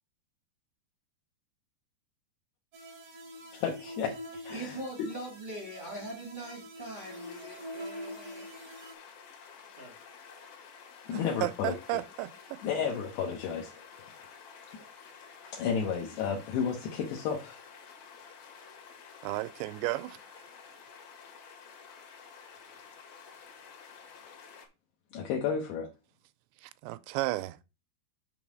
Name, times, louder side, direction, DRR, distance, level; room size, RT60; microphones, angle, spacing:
sound 1, 2.7-8.9, equal, 70° right, 1.2 m, -45 dB
voice 1, 3.5-5.1 11.1-11.7 12.6-13.9 15.5-17.6 25.1-25.9, left 6 dB, 75° left, 3.0 m, -32 dB
voice 2, 4.5-8.5 9.8-10.0, right 1 dB, 40° right, 0.6 m, -42 dB
sound 2, 6.9-24.7, left 6 dB, 60° left, 3.3 m, -51 dB
voice 3, 11.1-12.6 19.2-20.2 26.6-27.6, right 18 dB, 90° right, 2.8 m, -34 dB
6.9 x 3.6 x 6.2 m
omnidirectional pair, 5.0 m